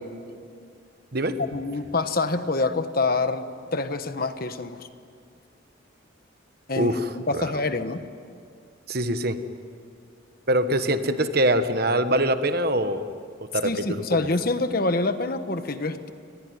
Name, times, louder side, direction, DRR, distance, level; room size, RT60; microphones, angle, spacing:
voice 1, 1.4-3.5 3.7-4.9 6.7-8.0 13.6-16.1, left 3 dB, 45° left, 10 dB, 1.2 m, -26 dB
voice 2, 6.8-7.4 8.9-9.4 10.5-13.0 13.5-14.0, right 1 dB, 50° right, 10 dB, 1.3 m, -23 dB
29.5 x 21.0 x 9.5 m, 2.3 s
head